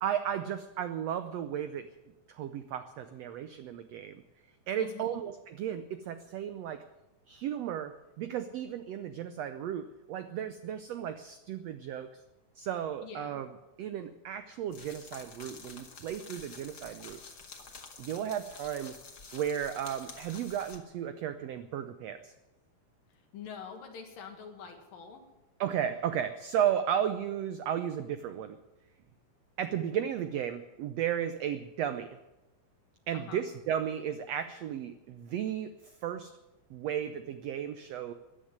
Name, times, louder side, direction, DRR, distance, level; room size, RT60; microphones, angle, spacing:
voice 1, 0.0-1.9 2.3-4.2 4.7-6.8 7.3-12.2 12.6-13.5 13.8-17.2 18.0-19.0 19.3-22.3 25.6-28.6 29.6-32.2 33.1-36.3 36.7-38.1, right 9 dB, 80° right, 10 dB, 1.4 m, -34 dB
voice 2, 4.8-5.2 13.0-13.4 23.1-25.3 33.1-33.4, left 6 dB, 85° left, 2 dB, 3.5 m, -46 dB
sound 1, 14.7-20.8, left 4 dB, 40° left, 1.8 m, -49 dB
14.5 x 10.0 x 9.4 m, 0.99 s
omnidirectional pair, 3.9 m